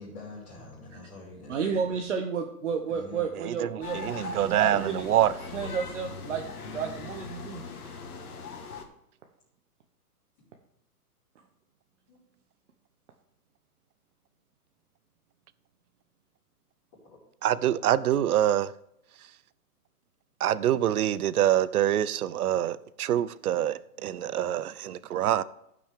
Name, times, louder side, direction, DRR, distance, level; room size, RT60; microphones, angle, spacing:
voice 1, 0.0-2.0 2.9-3.3 12.1-12.2 17.1-17.2, left 3 dB, 20° left, 4.0 m, -45 dB
voice 2, 1.5-5.1 5.5-8.0, right 6 dB, 50° right, 1.0 m, -32 dB
sound 1, 3.8-8.8, left 4 dB, 65° left, 1.7 m, -40 dB
voice 3, 3.9-5.3 17.4-18.7 20.4-25.4, right 11 dB, 70° right, 0.6 m, -25 dB
15.0 x 6.0 x 3.6 m
hypercardioid pair, 175°, 47 cm